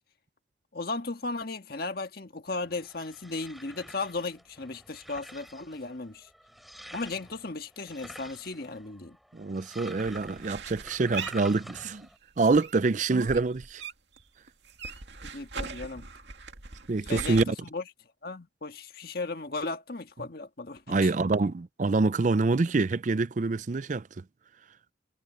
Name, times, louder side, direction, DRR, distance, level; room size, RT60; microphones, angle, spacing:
voice 1, 0.7-6.3 6.9-9.2 15.2-16.1 17.1-17.8 18.2-21.1, left 3 dB, 50° left, 1.7 m, -36 dB
sound 1, 2.5-12.2, equal, ahead, 5.9 m, -48 dB
voice 2, 9.3-12.0 12.4-13.8 16.9-17.5 20.9-24.0, right 3 dB, 40° right, 0.4 m, -26 dB
sound 2, 10.0-12.1 12.4-14.2 14.5-17.4, right 4 dB, 65° right, 2.5 m, -40 dB
head